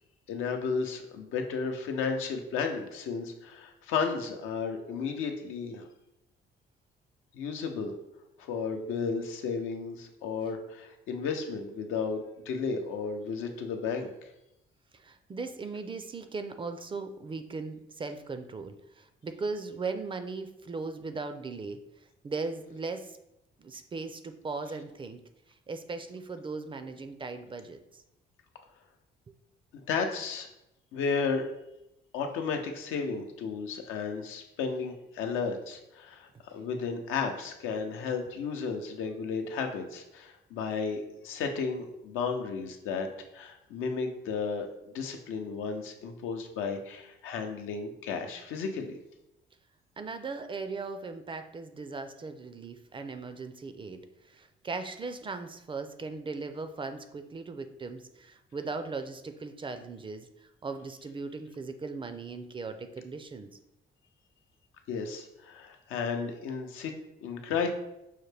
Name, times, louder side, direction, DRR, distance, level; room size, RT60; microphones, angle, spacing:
voice 1, 0.3-5.9 7.3-7.9 8.4-14.1 29.7-30.5 30.9-31.5 32.1-43.1 43.3-49.0 64.9-66.9 67.2-67.7, left 5 dB, 90° left, 4 dB, 0.6 m, -33 dB
voice 2, 14.9-21.8 22.2-23.1 23.6-25.2 25.7-28.0 50.0-63.5, right 4 dB, 25° right, 8 dB, 0.4 m, -38 dB
5.6 x 2.2 x 3.2 m, 0.86 s
cardioid pair, 90°, 20 cm